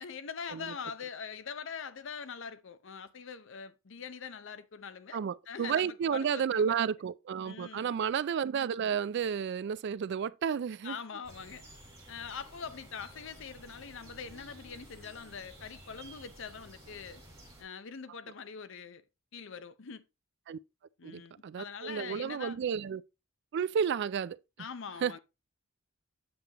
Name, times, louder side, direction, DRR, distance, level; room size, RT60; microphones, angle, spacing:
voice 1, 0.0-6.7 7.4-8.0 10.8-11.7 12.1-17.2 17.6-19.0 19.3-20.0 21.0-22.6 24.6-25.2, left 6 dB, 65° left, 0.7 m, -43 dB
voice 2, 5.1-11.0 20.5-20.6 21.0-23.0 23.5-24.4 25.0-25.2, right 7 dB, 55° right, 0.3 m, -32 dB
sound 1, 11.2-17.6, right 1 dB, 15° right, 3.8 m, -53 dB
7.8 x 7.1 x 2.9 m
head